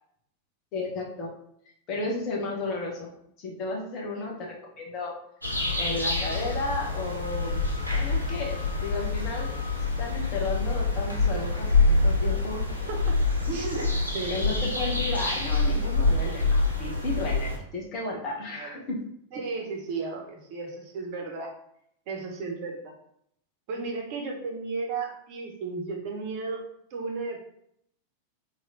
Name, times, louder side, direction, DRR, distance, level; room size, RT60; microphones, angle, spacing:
voice 1, 0.7-1.3 1.9-5.1 5.8-7.7 7.9-9.5 10.0-12.6 14.3-19.0, left 2 dB, 35° left, -1 dB, 1.3 m, -33 dB
sound 1, 5.4-17.6, left 3 dB, 90° right, 0.9 m, -26 dB
voice 2, 12.9-13.2 13.5-14.6 18.5-18.8 19.3-21.5 22.1-22.9 23.7-26.6 26.9-27.4, right 4 dB, 45° right, 1 dB, 1.2 m, -34 dB
3.4 x 3.1 x 4.1 m, 0.71 s
figure-of-eight pair, 90°, 0 cm